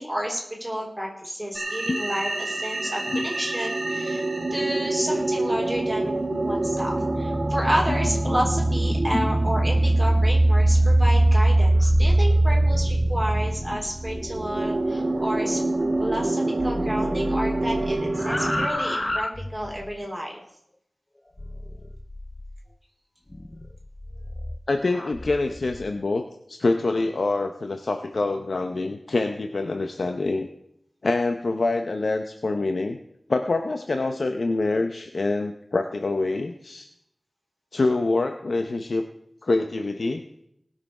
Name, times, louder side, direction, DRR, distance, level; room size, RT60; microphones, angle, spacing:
voice 1, 0.0-4.2 4.5-6.2 6.4-15.6 16.0-20.3, equal, 5° right, -2 dB, 3.7 m, -30 dB
sound 1, 1.5-18.7, right 2 dB, 60° right, 1.6 m, -23 dB
sound 2, 9.9-16.3 16.6-20.0 21.4-22.6 23.3-25.9, left 1 dB, 25° left, 0.6 m, -33 dB
voice 2, 24.7-26.2 26.5-30.5 31.0-33.0 33.3-36.9 37.7-39.0 39.4-40.2, left 3 dB, 75° left, 6 dB, 0.7 m, -25 dB
19.0 x 6.6 x 4.8 m, 0.75 s
wide cardioid pair, 80°, 0 cm